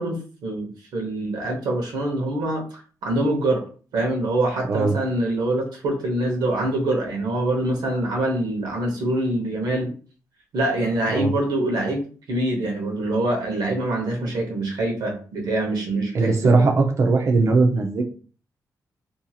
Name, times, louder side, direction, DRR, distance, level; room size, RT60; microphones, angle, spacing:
voice 1, 0.0-3.6 3.9-9.9 10.5-16.6, right 1 dB, 85° right, 2 dB, 0.9 m, -25 dB
voice 2, 16.1-18.0, right 3 dB, 45° right, 3 dB, 0.5 m, -19 dB
2.8 x 2.7 x 2.3 m, 0.40 s
wide cardioid pair, 150°, 7 cm